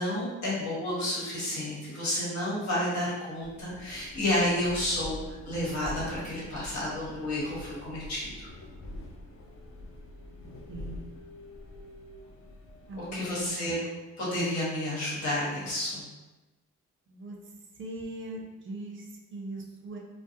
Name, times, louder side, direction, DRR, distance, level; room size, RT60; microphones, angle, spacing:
voice 1, 0.0-8.5 13.0-13.9 14.2-16.0, left 1 dB, 65° left, -7 dB, 1.2 m, -31 dB
sound 1, 3.4-13.5, left 2 dB, 45° left, 0.5 m, -45 dB
voice 2, 12.9-13.8 17.1-17.4 17.8-20.0, right 1 dB, 40° right, 0 dB, 0.5 m, -39 dB
2.3 x 2.0 x 2.7 m, 1.1 s
cardioid pair, 90°, 30 cm